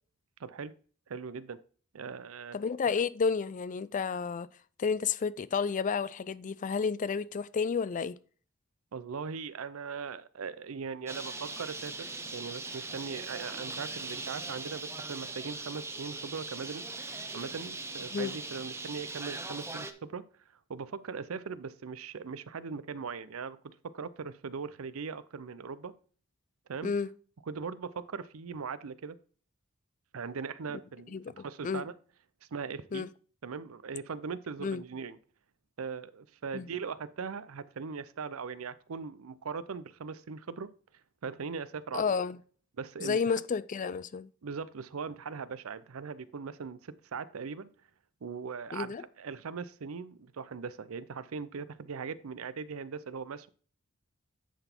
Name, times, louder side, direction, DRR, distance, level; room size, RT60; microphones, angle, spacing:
voice 1, 0.4-0.7 1.1-1.6 1.9-2.6 8.9-16.8 17.3-20.2 20.7-25.9 26.7-26.9 27.5-29.2 30.1-31.9 32.5-33.1 33.4-35.2 35.8-40.7 41.2-42.2 42.8-43.2 44.4-47.7 48.2-53.5, right 5 dB, 85° right, 0.6 m, -40 dB
voice 2, 2.5-4.5 4.8-8.2 18.1-18.3 26.8-27.1 31.1-31.8 32.9-33.1 34.6-34.8 36.5-36.7 41.9-42.4 43.0-44.3 48.7-49.0, left 5 dB, 40° left, 0.4 m, -31 dB
Bird, 11.1-19.9, right 3 dB, 15° right, 0.6 m, -40 dB
10.0 x 4.0 x 4.4 m
head